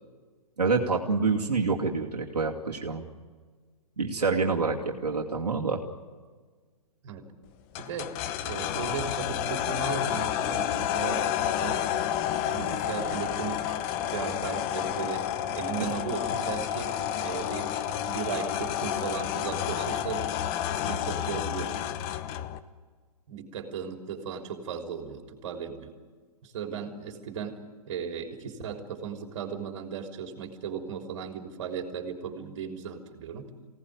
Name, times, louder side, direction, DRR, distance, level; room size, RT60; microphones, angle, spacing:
voice 1, 0.6-3.0 4.0-5.8, right 4 dB, 85° right, -1 dB, 2.5 m, -27 dB
sound 1, 7.7-22.6, left 10 dB, 30° left, 1.0 m, -30 dB
voice 2, 7.8-8.1 8.4-11.3 11.6-11.8 12.5-13.7 14.0-15.3 15.5-16.9 17.2-17.7 18.0-20.3 20.7-21.7 23.3-25.9 26.4-33.5, right 6 dB, 50° right, 4 dB, 3.5 m, -36 dB
24.0 x 18.0 x 9.4 m, 1.5 s
hypercardioid pair, 135°, 20 cm